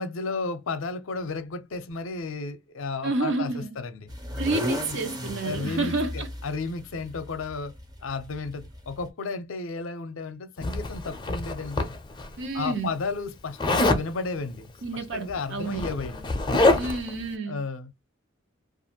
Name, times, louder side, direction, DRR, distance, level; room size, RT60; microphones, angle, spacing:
voice 1, 0.0-4.1 5.4-7.7 8.0-11.9 12.5-14.7 15.1-16.3 17.5-18.0, left 4 dB, 65° left, 0.5 m, -33 dB
voice 2, 3.0-3.8 4.4-6.3 12.4-12.9 14.8-15.9 16.8-17.6, right 3 dB, 60° right, 0.7 m, -29 dB
sound 1, 4.1-9.1, equal, 20° right, 0.6 m, -35 dB
Zipper (clothing), 10.6-12.3 13.6-14.1 15.2-15.3 15.6-17.1, left 2 dB, 20° left, 0.5 m, -25 dB
2.5 x 2.5 x 2.7 m
head